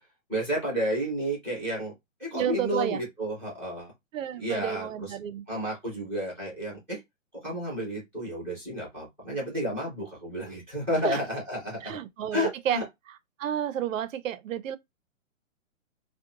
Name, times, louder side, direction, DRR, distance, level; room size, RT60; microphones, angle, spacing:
voice 1, 0.3-1.9 2.2-3.9 4.4-5.1 5.5-7.0 7.4-12.0 12.3-12.8, equal, 5° left, 0.8 m, -31 dB
voice 2, 2.3-3.0 4.1-5.4 11.0-11.2 11.8-12.8 13.4-14.8, right 10 dB, 70° right, 0.5 m, -31 dB
2.8 x 2.1 x 2.4 m
hypercardioid pair, 175°, 41 cm